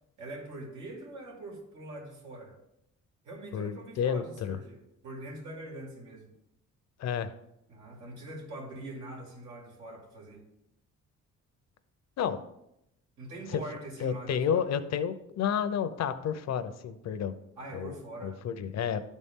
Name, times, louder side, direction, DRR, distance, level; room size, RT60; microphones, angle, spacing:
voice 1, 0.2-2.5 3.2-6.3 7.7-10.4 13.2-14.7 17.6-18.4, right 1 dB, 85° right, -2 dB, 2.6 m, -43 dB
voice 2, 3.5-4.6 7.0-7.3 12.2-12.4 13.5-13.6 14.0-17.3 17.7-19.0, left 8 dB, 60° left, 11 dB, 0.7 m, -31 dB
12.0 x 4.2 x 3.7 m, 0.83 s
cardioid pair, 90°, 30 cm